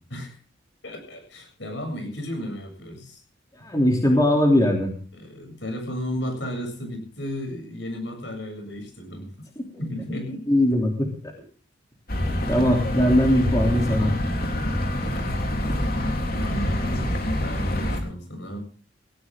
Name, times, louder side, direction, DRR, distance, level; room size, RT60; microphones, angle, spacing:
voice 1, 0.8-3.2 5.1-9.3 9.8-10.4 15.5-16.1 16.5-18.6, equal, 70° left, 4 dB, 7.8 m, -34 dB
voice 2, 3.6-4.9 10.5-11.1 12.5-14.1, left 1 dB, 20° left, 1 dB, 3.2 m, -20 dB
sound 1, 12.1-18.0, left 1 dB, 50° left, 3.6 m, -26 dB
18.0 x 18.0 x 3.8 m, 0.39 s
head